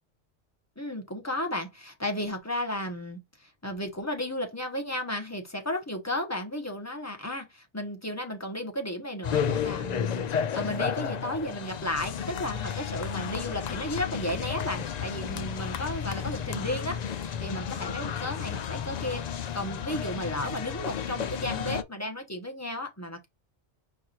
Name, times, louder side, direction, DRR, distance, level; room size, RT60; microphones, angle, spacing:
voice 1, 0.8-23.3, left 1 dB, 15° left, 1.1 m, -34 dB
sound 1, 9.2-21.8, left 8 dB, 65° left, 0.4 m, -32 dB
4.8 x 2.6 x 4.3 m
omnidirectional pair, 1.2 m